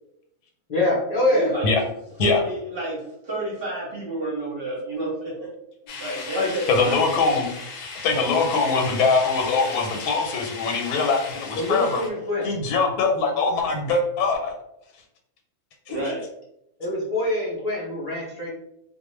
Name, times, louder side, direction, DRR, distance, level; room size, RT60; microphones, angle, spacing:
voice 1, 0.7-1.5 6.3-6.5 11.5-12.5 16.8-18.5, left 2 dB, 40° left, -6 dB, 0.5 m, -24 dB
voice 2, 1.3-1.7 2.2-5.5 6.0-7.0 15.9-16.2, right 1 dB, 50° right, -4 dB, 0.8 m, -29 dB
sound 1, 5.9-12.1, left 4 dB, 70° left, 0.9 m, -36 dB
voice 3, 6.7-7.5 8.0-12.0 12.4-14.5 15.9-16.0, left 4 dB, 85° left, 3 dB, 1.1 m, -22 dB
2.4 x 2.1 x 3.0 m, 0.80 s
omnidirectional pair, 1.6 m